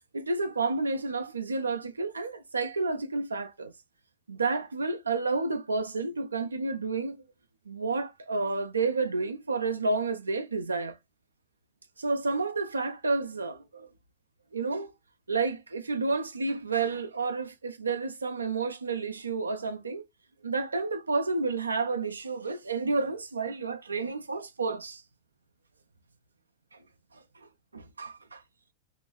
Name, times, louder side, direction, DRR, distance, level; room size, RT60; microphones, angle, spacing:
voice 1, 0.1-3.7 4.3-7.2 7.7-11.0 12.0-13.9 14.5-14.9 15.3-20.1 20.4-25.0 26.7-26.8 27.1-27.2 27.7-28.4, right 3 dB, 75° right, 0.3 m, -30 dB
2.9 x 2.4 x 3.0 m
figure-of-eight pair, 90°, 0 cm